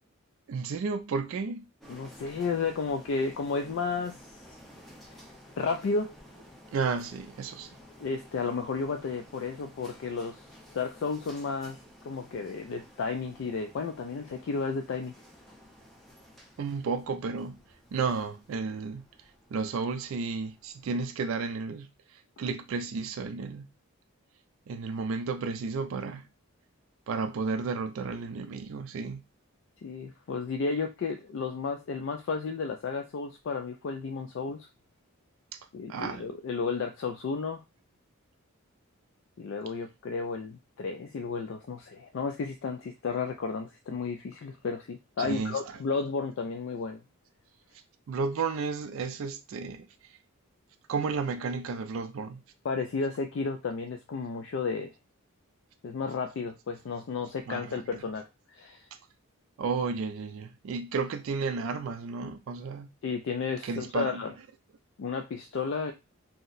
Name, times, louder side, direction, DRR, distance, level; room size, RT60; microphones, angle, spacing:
voice 1, 0.5-1.7 6.7-7.7 16.6-17.6 17.9-19.0 19.5-23.7 24.7-26.3 27.1-29.2 35.5-35.6 35.9-36.3 45.2-45.6 48.1-50.2 50.9-52.4 57.5-57.8 59.6-62.9 63.6-64.3, right 4 dB, 65° right, 0.3 m, -32 dB
sound 1, 1.8-21.5, equal, ahead, 0.5 m, -54 dB
voice 2, 1.9-4.3 5.1-5.2 5.6-6.1 8.0-10.4 10.7-11.8 12.0-15.1 29.8-34.7 35.7-37.6 39.4-47.0 52.6-54.9 55.8-58.9 63.0-64.3 65.0-65.9, left 4 dB, 55° left, 0.3 m, -33 dB
2.7 x 2.1 x 3.9 m
head